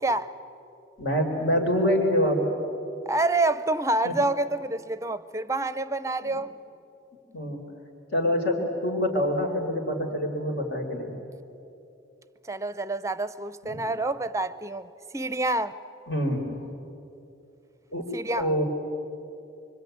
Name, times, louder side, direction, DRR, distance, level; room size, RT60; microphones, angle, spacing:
voice 1, 1.0-2.5 4.0-4.1 6.2-6.4 7.3-7.6 8.1-11.2 13.6-13.8 16.1-16.7 17.9-18.1 18.4-18.6, equal, 70° left, 4.2 m, -26 dB
voice 2, 3.1-6.5 12.5-14.9 15.1-15.8 18.1-18.5, right 2 dB, 15° right, 0.6 m, -27 dB
26.0 x 25.0 x 9.3 m
head